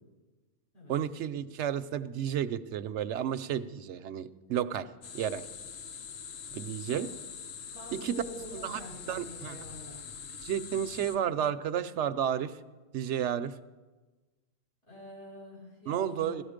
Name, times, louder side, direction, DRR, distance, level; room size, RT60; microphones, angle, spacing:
voice 1, 0.9-4.9 5.1-5.4 6.5-7.1 7.9-8.2 8.5-8.8 9.1-9.6 10.4-12.5 12.9-13.5 15.9-16.4, right 9 dB, 65° right, 12 dB, 0.9 m, -32 dB
sound 1, 5.0-11.2, left 6 dB, 80° left, 1.2 m, -44 dB
voice 2, 7.7-10.0 10.6-10.8 14.8-16.4, left 1 dB, 55° left, -5 dB, 6.6 m, -46 dB
17.0 x 13.0 x 5.1 m, 1.2 s
omnidirectional pair, 1.3 m